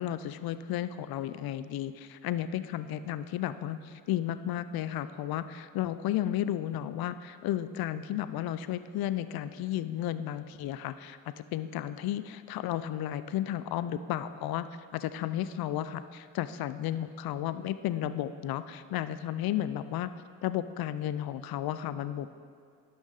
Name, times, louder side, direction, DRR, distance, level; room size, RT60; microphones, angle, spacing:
voice 1, 0.0-14.7 14.9-20.1 20.4-22.4, left 12 dB, 55° left, 13 dB, 0.5 m, -33 dB
11.5 x 6.2 x 4.0 m, 2.2 s
hypercardioid pair, 55°, 45 cm